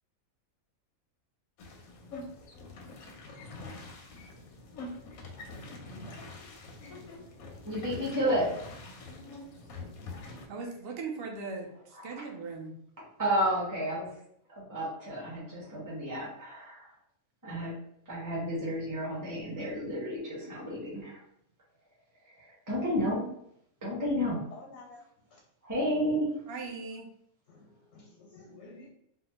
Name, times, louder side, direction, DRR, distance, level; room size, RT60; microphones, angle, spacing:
sound 1, 1.6-10.5, left 2 dB, 90° left, 1.1 m, -45 dB
voice 1, 7.6-8.5 12.0-12.1 13.2-14.1 14.6-16.8 17.4-17.8 18.1-21.2 22.7-23.3 23.8-24.4 25.6-26.3, equal, 15° right, -6 dB, 1.0 m, -31 dB
voice 2, 10.5-12.7 26.5-27.1, right 4 dB, 55° right, 2 dB, 0.7 m, -39 dB
voice 3, 24.5-25.0 25.3-25.4 27.5-28.9, left 3 dB, 65° left, 0 dB, 0.8 m, -51 dB
3.5 x 2.1 x 3.0 m, 0.72 s
omnidirectional pair, 1.5 m